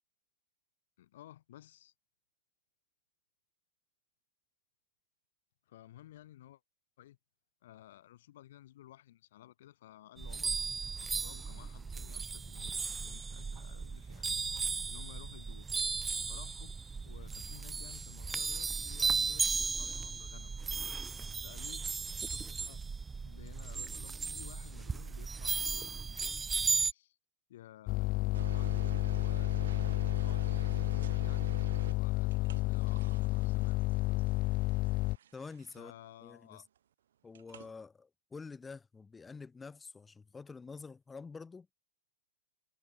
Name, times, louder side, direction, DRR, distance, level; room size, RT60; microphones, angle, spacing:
voice 1, 1.0-1.9 5.7-6.6 7.0-7.2 7.6-10.6 10.9-15.7 16.3-16.7 17.0-20.5 21.3-21.9 22.3-22.8 23.2-26.4 26.8-27.2 27.5-28.1 28.5-34.2 35.8-36.7, left 13 dB, 60° left, 7.1 m, -55 dB
sound 1, 10.2-26.9, right 5 dB, 15° right, 1.1 m, -36 dB
sound 2, 27.9-35.2, left 21 dB, 40° left, 0.3 m, -31 dB
sound 3, 28.3-36.0 37.3-37.7, right 10 dB, 70° right, 3.2 m, -48 dB
voice 2, 35.3-35.9 36.2-36.6 37.2-41.7, left 4 dB, 15° left, 6.6 m, -48 dB
hypercardioid pair, 105°, 0 cm